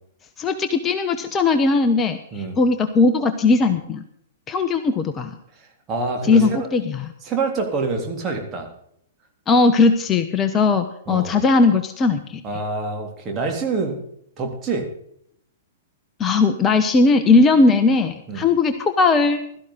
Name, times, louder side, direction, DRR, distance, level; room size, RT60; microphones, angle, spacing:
voice 1, 0.4-4.0 4.5-5.4 6.2-7.1 9.5-12.4 16.2-19.4, left 3 dB, 20° left, 8 dB, 1.0 m, -18 dB
voice 2, 5.9-6.7 7.2-8.7 11.1-11.4 12.4-14.0 14.4-14.9 18.3-18.5, right 3 dB, 25° right, 2 dB, 3.6 m, -26 dB
16.5 x 13.0 x 4.0 m, 0.69 s
figure-of-eight pair, 105°, 0 cm